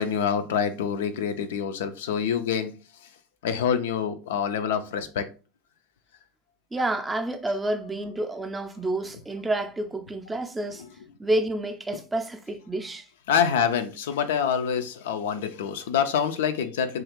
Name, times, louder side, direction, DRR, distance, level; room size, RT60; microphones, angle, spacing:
voice 1, 0.0-2.7 3.4-5.3 13.3-17.0, left 7 dB, 65° left, 0.3 m, -26 dB
voice 2, 6.7-10.8 11.2-13.1, right 1 dB, 15° right, 0.4 m, -29 dB
3.0 x 2.4 x 2.9 m
figure-of-eight pair, 80°, 0 cm